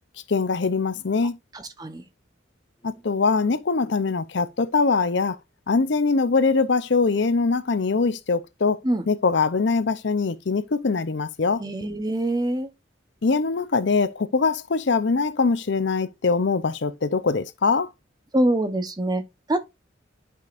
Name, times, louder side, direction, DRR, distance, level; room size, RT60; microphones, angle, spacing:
voice 1, 0.3-1.4 2.8-5.4 5.7-8.8 9.1-11.6 13.2-17.9, left 4 dB, 60° left, 0.6 m, -22 dB
voice 2, 1.5-2.0 8.8-9.0 11.6-12.7 18.3-19.2 19.5-19.6, right 1 dB, 20° right, 0.8 m, -24 dB
11.0 x 5.1 x 2.5 m
head